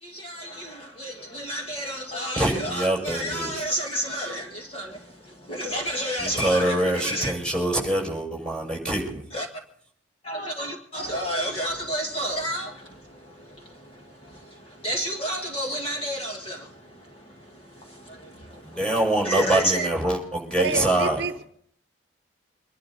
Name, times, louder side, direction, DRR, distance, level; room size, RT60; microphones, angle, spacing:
voice 1, 0.0-7.3 9.3-9.5 10.2-19.0 19.2-19.9, equal, 30° left, 1.7 m, -31 dB
voice 2, 2.4-3.6 6.2-9.2 18.6-21.2, right 1 dB, 5° left, 5.9 m, -25 dB
voice 3, 20.6-21.4, right 3 dB, 55° right, 1.0 m, -28 dB
25.0 x 11.5 x 4.0 m
head